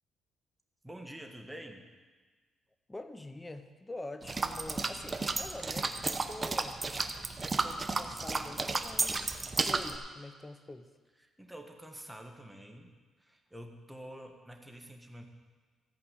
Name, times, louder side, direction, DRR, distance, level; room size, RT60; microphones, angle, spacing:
voice 1, 0.8-1.9 11.2-12.9 13.2-15.2, right 1 dB, 5° right, 3 dB, 1.5 m, -47 dB
voice 2, 2.9-6.8 7.5-10.9, left 2 dB, 15° left, 9 dB, 0.9 m, -45 dB
sound 1, 4.2-10.0, right 3 dB, 25° right, 0.8 m, -33 dB
14.0 x 5.3 x 8.2 m, 1.4 s
cardioid pair, 90°, 0 cm